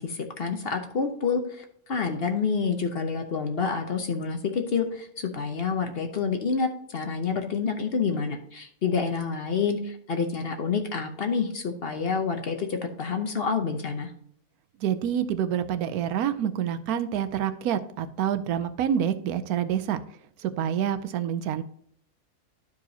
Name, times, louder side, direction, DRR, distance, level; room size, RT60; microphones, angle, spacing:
voice 1, 0.0-14.1, left 5 dB, 50° left, 5 dB, 0.9 m, -28 dB
voice 2, 14.8-20.0 20.4-21.6, right 9 dB, 85° right, 11 dB, 1.1 m, -27 dB
12.0 x 4.8 x 2.8 m, 0.65 s
omnidirectional pair, 1.5 m